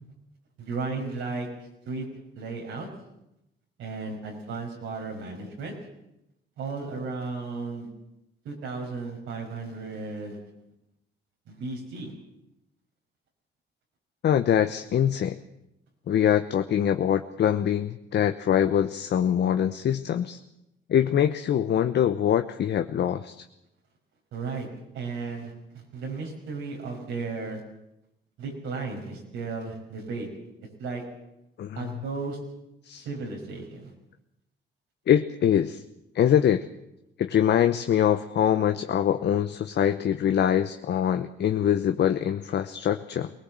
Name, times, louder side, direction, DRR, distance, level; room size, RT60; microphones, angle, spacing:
voice 1, 0.6-1.5 1.9-2.1 2.3-2.9 3.8-5.8 6.6-7.9 8.4-10.4 11.5-12.1 24.3-24.7 24.9-27.6 28.4-30.3 30.8-31.0 31.8-32.4 33.0-33.9, right 4 dB, 85° right, 0 dB, 5.9 m, -34 dB
voice 2, 14.2-15.3 16.1-20.4 20.9-23.4 31.6-31.9 32.8-33.0 35.1-35.8 36.1-36.6 37.2-43.3, left 9 dB, 60° left, 8 dB, 1.0 m, -24 dB
21.0 x 18.5 x 7.6 m, 0.86 s
cardioid pair, 90°, 20 cm